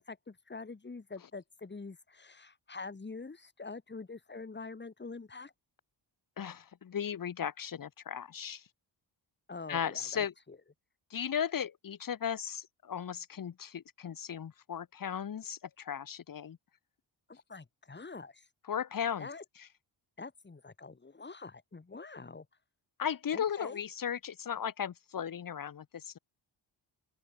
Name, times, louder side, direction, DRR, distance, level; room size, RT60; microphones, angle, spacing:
voice 1, 0.1-5.5 9.5-10.6 17.3-18.5 19.2-19.4 20.2-22.4 23.3-23.8, left 4 dB, 25° left, 3.3 m, -45 dB
voice 2, 6.4-8.6 9.7-10.3 11.1-16.6 18.7-19.3 23.0-26.2, left 8 dB, 45° left, 1.4 m, -36 dB
open air
wide cardioid pair, 130°, 45 cm